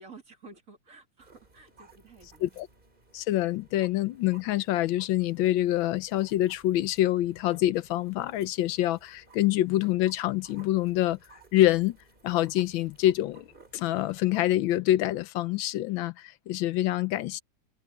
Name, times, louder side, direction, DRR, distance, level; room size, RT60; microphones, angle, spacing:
voice 1, 0.0-2.6, right 3 dB, 40° right, 3.1 m, -52 dB
sound 1, 1.2-14.6, right 3 dB, 25° right, 3.2 m, -58 dB
voice 2, 3.1-11.2 11.5-12.0 12.2-13.5 13.7-17.4, left 14 dB, 85° left, 1.4 m, -26 dB
omnidirectional pair, 2.1 m